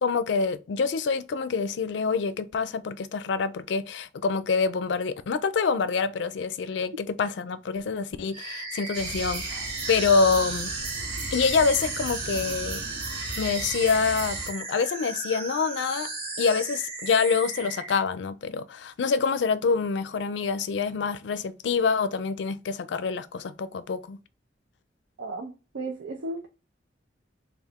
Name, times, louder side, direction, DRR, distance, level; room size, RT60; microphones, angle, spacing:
voice 1, 0.0-9.6 9.9-10.7 11.3-12.8 13.4-16.1 16.4-24.2, left 5 dB, 75° left, 0.4 m, -26 dB
sound 1, 8.3-18.0, right 3 dB, 35° right, 0.8 m, -36 dB
sound 2, 8.9-14.5, right 3 dB, 65° right, 1.0 m, -35 dB
voice 2, 25.2-26.5, right 2 dB, 85° right, 0.5 m, -35 dB
3.5 x 2.3 x 3.5 m
head